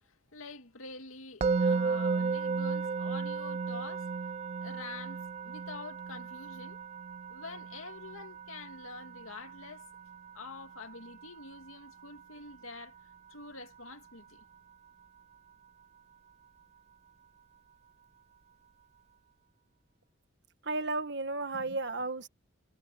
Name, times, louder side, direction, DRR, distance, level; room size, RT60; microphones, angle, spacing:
voice 1, 0.0-4.3 4.6-6.8 7.3-9.9 10.3-13.0 13.3-14.4, left 3 dB, 90° left, 2.4 m, -46 dB
Musical instrument, 1.4-12.5, right 4 dB, 30° right, 0.3 m, -35 dB
voice 2, 20.6-22.3, right 3 dB, 60° right, 1.7 m, -33 dB
head